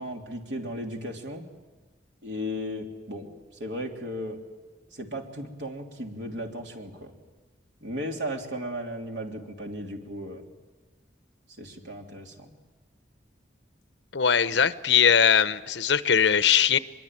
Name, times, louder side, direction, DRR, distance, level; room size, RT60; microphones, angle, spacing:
voice 1, 0.0-1.5 2.2-3.3 3.6-4.4 4.9-7.1 7.8-10.4 11.6-12.5, equal, 85° right, 1 dB, 3.3 m, -35 dB
voice 2, 14.1-16.8, left 7 dB, 80° left, 13 dB, 0.9 m, -21 dB
23.5 x 23.5 x 9.1 m, 1.2 s
head